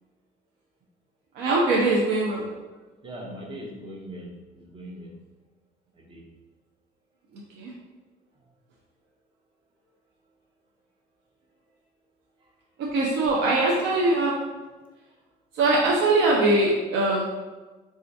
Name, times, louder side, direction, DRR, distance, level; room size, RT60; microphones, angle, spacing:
voice 1, 1.3-2.5 7.6-7.7 12.8-14.3 15.5-17.3, right 2 dB, 90° right, -3 dB, 0.6 m, -22 dB
voice 2, 3.0-5.1 5.9-6.3 12.4-12.5, equal, 30° right, 1 dB, 0.7 m, -40 dB
4.2 x 2.4 x 2.6 m, 1.3 s
cardioid pair, 110°, 17 cm